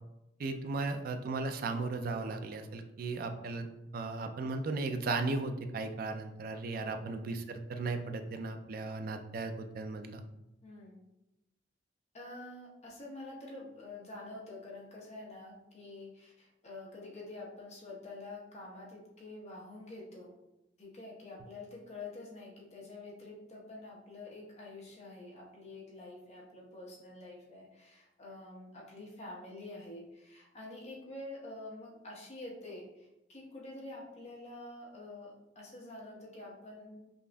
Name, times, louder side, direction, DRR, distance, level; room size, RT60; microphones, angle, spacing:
voice 1, 0.4-3.7 3.9-10.2, right 3 dB, 55° right, 7 dB, 0.3 m, -36 dB
voice 2, 6.8-7.2 10.6-11.0 12.1-20.4 20.8-37.0, left 2 dB, 40° left, -4 dB, 1.0 m, -47 dB
5.2 x 2.5 x 2.2 m, 0.91 s
head